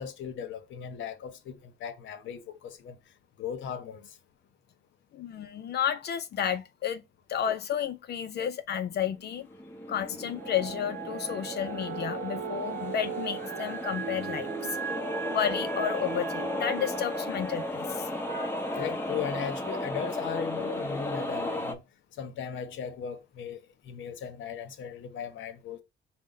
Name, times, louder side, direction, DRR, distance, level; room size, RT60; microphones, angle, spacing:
voice 1, 0.0-3.0 3.4-4.1 18.3-21.8 22.2-23.6 23.8-25.8, left 7 dB, 75° left, 0.8 m, -37 dB
voice 2, 5.1-7.0 7.3-9.5 9.9-14.8 15.3-18.1, left 9 dB, 55° left, 0.4 m, -32 dB
sound 1, 9.3-21.8, left 1 dB, 10° left, 0.7 m, -35 dB
sound 2, 10.4-17.7, right 9 dB, 75° right, 0.5 m, -38 dB
5.1 x 2.1 x 3.8 m
cardioid pair, 90°, 20 cm